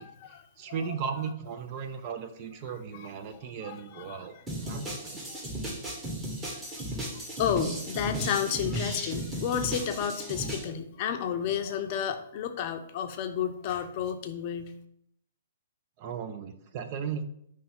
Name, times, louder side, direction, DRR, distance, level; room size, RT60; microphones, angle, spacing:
voice 1, 0.0-0.4 0.7-0.8 2.9-4.4 5.3-5.4 7.4-14.7, left 8 dB, 40° left, 6 dB, 0.6 m, -32 dB
voice 2, 0.6-4.3 4.7-5.2 16.0-17.2, right 6 dB, 40° right, 8 dB, 0.6 m, -36 dB
sound 1, 4.5-10.7, right 1 dB, 15° right, 1.5 m, -35 dB
5.5 x 3.2 x 5.5 m, 0.72 s
figure-of-eight pair, 120°, 0 cm